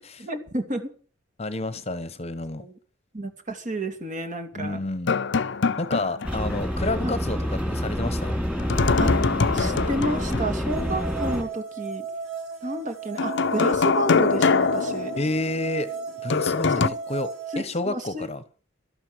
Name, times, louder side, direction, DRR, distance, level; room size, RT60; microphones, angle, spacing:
voice 1, 0.2-0.9 2.6-2.7 3.1-4.8 7.0-7.2 9.0-9.1 9.5-12.1 12.6-15.1 16.8-17.0 17.5-18.3, right 1 dB, 40° right, 2.7 m, -30 dB
voice 2, 1.4-2.6 4.6-5.2 5.8-8.4 15.2-15.9 16.2-17.3 17.5-18.4, left 2 dB, 30° left, 1.1 m, -29 dB
sound 1, 5.1-6.6 6.9-7.0 8.6-10.6 13.2-15.7 16.3-16.9, left 4 dB, 60° left, 0.6 m, -23 dB
sound 2, 6.2-11.4, equal, 5° right, 3.8 m, -27 dB
sound 3, 10.7-17.6, right 5 dB, 80° right, 5.3 m, -35 dB
13.0 x 12.0 x 6.4 m
head